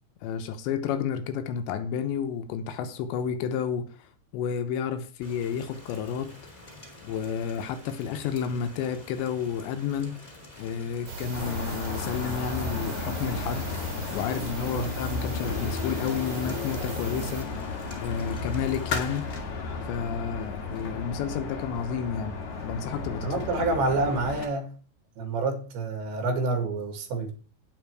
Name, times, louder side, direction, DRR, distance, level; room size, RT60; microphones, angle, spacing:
voice 1, 0.2-3.9 4.3-6.3 7.0-10.2 10.6-17.5 18.0-19.2 19.9-22.4 22.6-23.3, left 7 dB, 85° left, 9 dB, 3.2 m, -31 dB
Rain, 5.2-19.2, left 1 dB, 20° left, 3.1 m, -48 dB
sound 1, 11.1-17.4, right 5 dB, 40° right, 2.1 m, -39 dB
sound 2, 11.3-24.5, left 4 dB, 50° left, 2.7 m, -34 dB
voice 2, 23.2-24.7 25.2-27.3, right 3 dB, 85° right, 5 dB, 4.3 m, -28 dB
9.1 x 8.4 x 4.7 m, 0.38 s
omnidirectional pair, 5.0 m